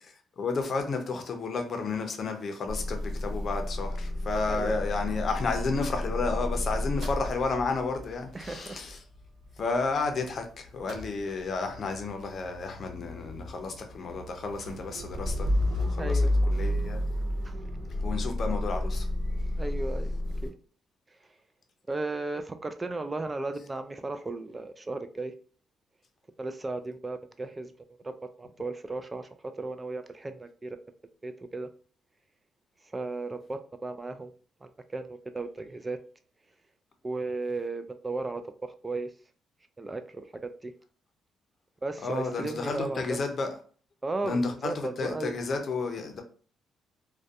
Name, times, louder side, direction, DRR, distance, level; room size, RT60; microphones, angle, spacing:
voice 1, 0.4-9.0 9.6-17.0 17.9-19.1 42.0-43.5 44.2-46.2, left 4 dB, 50° left, 0.5 m, -32 dB
Motor vehicle (road) / Engine starting / Idling, 2.7-10.4 10.7-20.5, left 1 dB, 75° right, 0.8 m, -32 dB
voice 2, 4.5-4.8 8.3-8.8 16.0-16.3 17.4-17.5 19.6-20.5 21.9-25.3 26.4-27.7 28.0-28.1 28.4-29.3 29.6-30.8 31.2-31.7 32.9-34.3 34.6-36.0 37.0-39.1 39.8-40.7 41.8-43.2 44.0-45.4, right 2 dB, 20° right, 0.3 m, -35 dB
2.6 x 2.2 x 2.3 m
cardioid pair, 90°, 0 cm